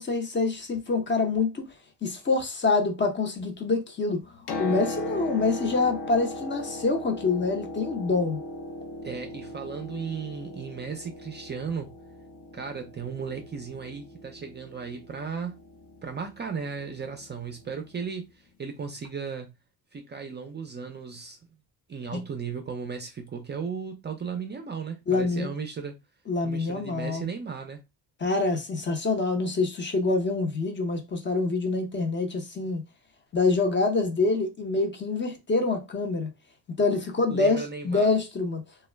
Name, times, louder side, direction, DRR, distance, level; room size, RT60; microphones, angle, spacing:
voice 1, 0.0-1.6 2.0-4.2 4.6-8.4 22.1-22.2 25.1-25.5 26.3-27.3 28.2-32.8 33.3-36.3 36.8-38.6, left 3 dB, 30° left, 0.6 m, -26 dB
Piano, 4.2-18.0 19.0-19.1, left 2 dB, 70° left, 0.7 m, -39 dB
voice 2, 9.0-11.9 12.5-15.6 16.0-19.5 19.9-21.4 21.9-25.9 26.4-27.8 37.3-38.1, right 5 dB, 25° right, 0.4 m, -35 dB
2.2 x 2.0 x 3.2 m
cardioid pair, 105°, 41 cm